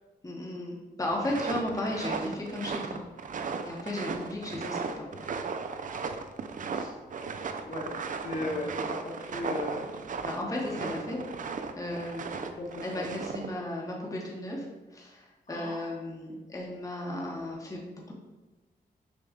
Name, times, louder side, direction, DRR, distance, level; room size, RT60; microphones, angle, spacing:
voice 1, 0.2-3.0 3.6-5.0 8.4-8.6 10.2-11.2 11.8-12.3 12.8-14.7 14.9-18.1, left 1 dB, 20° left, -2 dB, 0.8 m, -35 dB
sound 1, 1.1-13.5, right 5 dB, 50° right, 0.4 m, -36 dB
voice 2, 8.2-9.8 10.8-11.0 12.4-12.7 12.9-13.1 15.5-15.8, left 2 dB, 50° left, -2 dB, 1.0 m, -36 dB
6.2 x 2.3 x 3.7 m, 1.1 s
cardioid pair, 80°, 17 cm